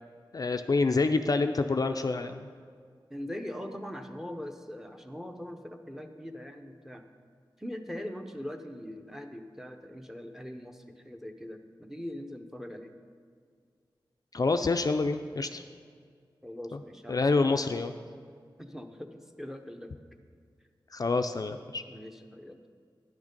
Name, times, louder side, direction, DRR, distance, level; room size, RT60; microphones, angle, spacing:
voice 1, 0.3-2.5 14.3-15.6 17.1-17.9 20.9-21.8, left 3 dB, 45° left, 7 dB, 0.4 m, -27 dB
voice 2, 3.1-7.0 7.6-12.9 16.4-17.9 18.6-19.9 21.9-22.7, left 1 dB, 5° right, 6 dB, 0.8 m, -41 dB
10.5 x 6.1 x 5.2 m, 2.1 s
wide cardioid pair, 60°, 9 cm